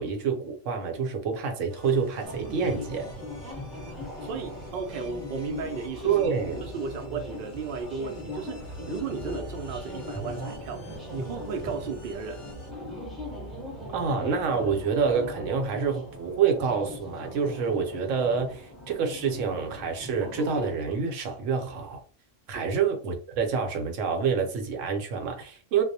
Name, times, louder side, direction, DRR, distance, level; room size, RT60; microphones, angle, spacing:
voice 1, 0.0-3.1 6.0-6.6 13.9-22.0 22.5-25.8, right 6 dB, 80° right, 0.9 m, -27 dB
sound 1, 1.7-12.7, left 2 dB, 45° left, 0.8 m, -48 dB
sound 2, 2.2-20.7, left 1 dB, ahead, 0.6 m, -39 dB
voice 2, 4.2-6.2 6.6-10.9 11.1-12.5 22.5-22.7, right 4 dB, 60° right, 0.6 m, -35 dB
2.3 x 2.0 x 2.6 m
omnidirectional pair, 1.3 m